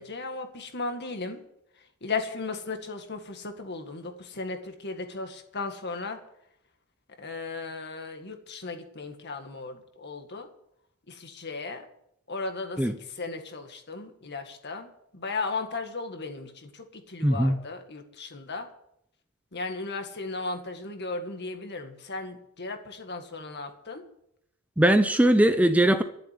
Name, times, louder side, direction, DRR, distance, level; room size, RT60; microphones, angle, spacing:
voice 1, 0.0-1.4 2.0-6.2 7.2-10.5 11.1-11.8 12.3-18.7 19.5-24.0, left 3 dB, 50° left, 6 dB, 1.9 m, -36 dB
voice 2, 17.2-17.6 24.8-26.0, right 1 dB, 5° right, 9 dB, 0.6 m, -20 dB
12.5 x 7.7 x 9.6 m, 0.75 s
head